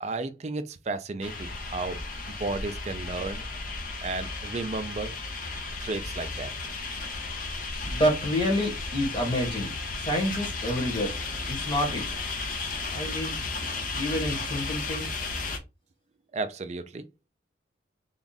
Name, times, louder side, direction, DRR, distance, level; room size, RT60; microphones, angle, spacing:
voice 1, 0.0-2.0 2.3-3.5 4.0-5.1 5.8-6.5 16.3-17.0, right 3 dB, 35° right, 0.4 m, -33 dB
sound 1, 1.2-15.6, left 3 dB, 45° left, 0.6 m, -34 dB
voice 2, 7.9-9.7 10.0-11.1 11.5-12.0 12.9-13.4 13.9-15.1, equal, 25° left, 1.2 m, -28 dB
3.5 x 2.4 x 3.9 m
head